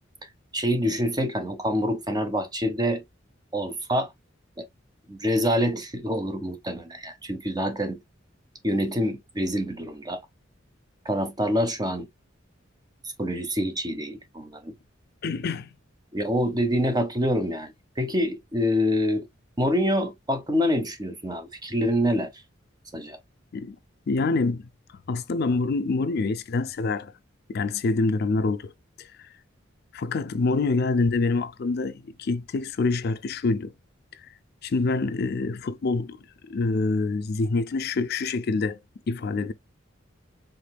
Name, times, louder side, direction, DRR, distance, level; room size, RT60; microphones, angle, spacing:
voice 1, 0.5-3.0 3.5-4.1 4.6-4.7 5.1-8.0 8.6-10.2 11.0-12.1 13.2-14.7 16.1-19.3 19.6-22.3 22.9-23.2, equal, 20° right, 0.9 m, -26 dB
voice 2, 15.2-15.7 23.5-23.8 24.1-24.7 25.1-27.1 27.5-28.7 29.0-29.1 29.9-33.7 34.6-36.2 36.5-38.8 39.1-39.5, left 3 dB, 55° left, 0.5 m, -26 dB
5.1 x 3.7 x 2.2 m
head